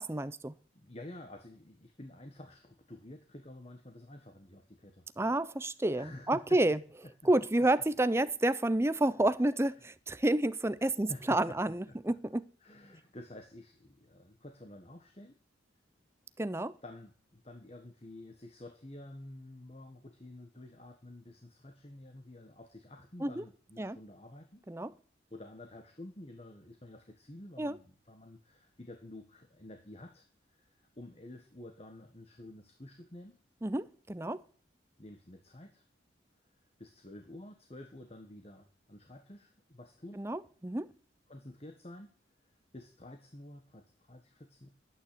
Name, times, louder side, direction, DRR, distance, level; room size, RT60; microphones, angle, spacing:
voice 1, 0.0-0.5 5.2-6.8 7.2-12.4 16.4-16.7 23.2-23.4 23.8-24.0 24.7-24.9 27.6-27.8 33.6-34.4 40.2-40.9, right 1 dB, 15° right, 0.6 m, -30 dB
voice 2, 0.7-5.0 5.9-6.6 10.9-11.6 11.9-12.1 12.6-15.4 16.8-24.6 25.3-33.4 35.0-35.8 36.8-40.2 41.3-42.1 42.4-44.7, left 1 dB, 30° left, 1.4 m, -50 dB
11.5 x 9.4 x 8.4 m
head